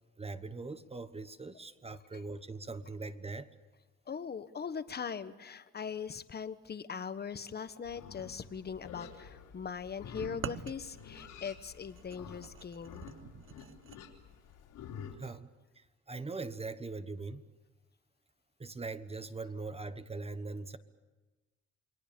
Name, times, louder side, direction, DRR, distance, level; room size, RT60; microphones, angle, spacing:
voice 1, 0.2-3.5 15.2-15.5 15.8-17.4 18.6-20.8, right 3 dB, 20° right, 11 dB, 1.2 m, -41 dB
voice 2, 4.1-13.0, left 6 dB, 30° left, 12 dB, 1.3 m, -40 dB
Livestock farm animals working animals, 7.8-15.2, left 7 dB, 80° left, 3.9 m, -50 dB
sound 1, 10.2-14.0, right 9 dB, 45° right, 0.8 m, -46 dB
28.5 x 21.5 x 6.9 m, 1.2 s
cardioid pair, 105°, 31 cm